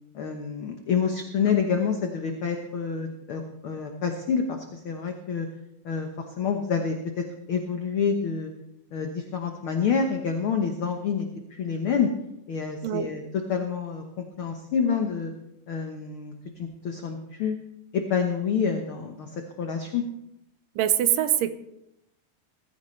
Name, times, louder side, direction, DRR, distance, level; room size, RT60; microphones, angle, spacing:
voice 1, 0.1-5.5 5.8-8.5 8.9-12.1 12.5-13.2 13.5-15.3 15.7-17.6 17.9-20.0, left 6 dB, 65° left, 4 dB, 1.3 m, -28 dB
voice 2, 12.8-13.2 20.8-21.5, right 11 dB, 80° right, 11 dB, 2.4 m, -23 dB
20.0 x 15.5 x 3.2 m, 0.83 s
omnidirectional pair, 4.0 m